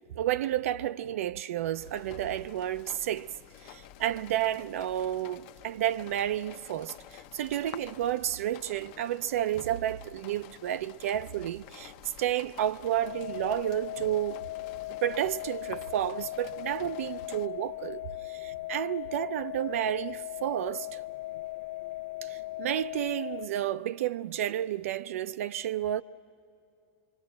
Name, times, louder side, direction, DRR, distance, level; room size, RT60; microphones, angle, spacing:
voice 1, 0.1-3.3 3.6-11.9 12.2-14.4 15.0-18.0 18.3-21.0 22.2-26.0, right 12 dB, 75° right, 0.5 m, -31 dB
sound 1, 1.8-17.5, left 12 dB, 45° left, 0.6 m, -50 dB
sound 2, 13.0-23.5, left 17 dB, 80° left, 0.6 m, -38 dB
25.0 x 24.5 x 7.8 m
supercardioid pair, 165°, 7 cm